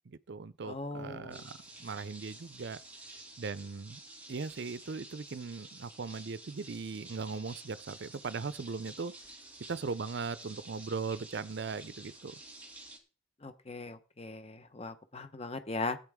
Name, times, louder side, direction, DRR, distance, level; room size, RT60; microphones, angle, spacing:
voice 1, 0.1-1.5 1.8-2.8 3.4-4.0 4.3-9.1 9.7-12.4, right 4 dB, 55° right, 0.5 m, -39 dB
voice 2, 0.6-1.4 13.4-16.0, left 3 dB, 30° left, 0.9 m, -39 dB
sound 1, 1.3-13.0, right 2 dB, 10° right, 2.2 m, -51 dB
15.5 x 8.9 x 3.6 m
head